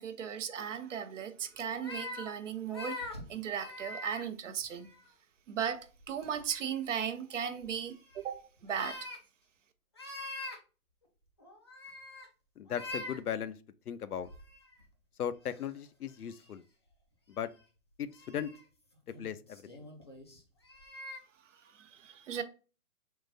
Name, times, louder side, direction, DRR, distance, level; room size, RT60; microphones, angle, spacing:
voice 1, 0.0-3.0 3.3-4.9 5.5-9.0 21.7-22.4, right 8 dB, 55° right, 0.7 m, -37 dB
sound 1, 1.7-2.3 2.7-4.2 4.6-5.1 6.0-6.8 7.6-8.2 8.6-9.2 10.0-10.6 11.4-12.3 12.7-13.2 14.2-14.8 15.4-15.6 16.3-16.5 18.1-18.6 19.1-21.2, left 2 dB, 20° left, 0.3 m, -44 dB
voice 2, 12.6-13.6 13.9-14.3 15.2-16.6 17.3-17.5 18.0-18.5 19.2-19.6, left 9 dB, 80° left, 0.6 m, -37 dB
3.7 x 2.4 x 4.0 m
figure-of-eight pair, 125°, 44 cm